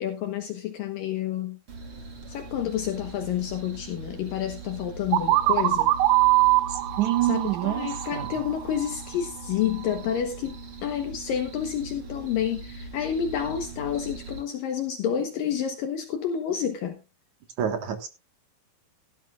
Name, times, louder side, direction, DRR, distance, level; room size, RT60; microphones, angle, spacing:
voice 1, 0.0-1.6 2.3-5.9 7.2-10.6 10.8-17.0, left 9 dB, 70° left, 2.6 m, -29 dB
sound 1, 1.7-14.4, right 2 dB, 40° right, 3.1 m, -41 dB
sound 2, 5.1-8.9, right 16 dB, 90° right, 2.9 m, -23 dB
voice 2, 6.7-8.3 17.6-18.1, right 12 dB, 60° right, 2.6 m, -27 dB
16.5 x 13.0 x 2.4 m
omnidirectional pair, 4.5 m